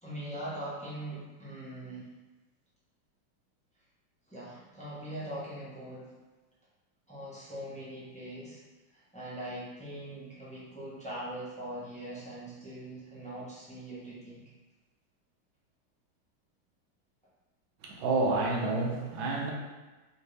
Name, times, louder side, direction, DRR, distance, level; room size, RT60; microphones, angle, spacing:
voice 1, 0.0-2.1 4.3-6.1 7.1-8.6 8.9-14.5, right 1 dB, 10° left, -9 dB, 0.5 m, -41 dB
voice 2, 17.8-19.5, right 3 dB, 75° right, -2 dB, 1.5 m, -29 dB
5.3 x 2.6 x 3.2 m, 1.2 s
omnidirectional pair, 2.2 m